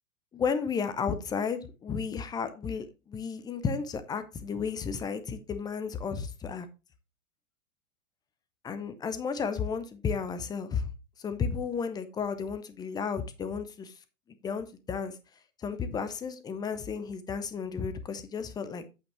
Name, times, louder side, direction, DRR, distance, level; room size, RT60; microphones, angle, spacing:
voice 1, 0.3-6.7 8.6-10.9 11.2-13.9 14.4-15.2 15.6-18.9, left 6 dB, 10° left, 0.6 m, -33 dB
8.5 x 7.8 x 2.9 m
figure-of-eight pair, 105°, 43 cm